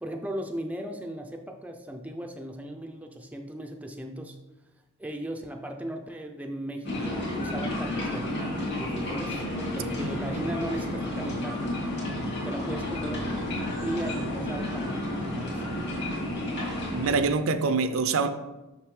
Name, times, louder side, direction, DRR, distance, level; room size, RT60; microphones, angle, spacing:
voice 1, 0.0-4.4 5.0-9.5 9.7-11.8 12.4-13.4 13.8-15.7, right 1 dB, 5° right, 3 dB, 0.4 m, -37 dB
sound 1, 6.8-17.2, left 1 dB, 50° left, 2.4 m, -31 dB
voice 2, 16.9-18.3, right 4 dB, 65° right, 10 dB, 0.5 m, -25 dB
6.6 x 6.0 x 3.2 m, 1.1 s
head